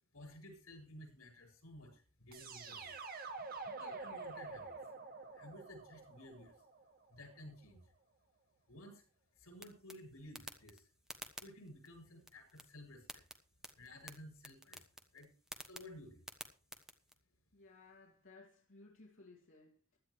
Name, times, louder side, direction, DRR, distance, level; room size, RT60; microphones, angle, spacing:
voice 1, 0.1-3.0 3.6-4.8 5.3-6.6 7.1-7.9 8.7-9.0 9.3-10.9 11.4-13.2 13.7-14.9 15.1-15.3 15.7-16.3, left 1 dB, 90° left, 7.5 m, -54 dB
sound 1, 2.3-7.2, right 4 dB, 45° right, 1.8 m, -48 dB
sound 2, 9.6-17.1, equal, ahead, 1.3 m, -54 dB
voice 2, 17.5-20.0, left 3 dB, 60° left, 2.7 m, -60 dB
16.5 x 12.0 x 3.3 m
head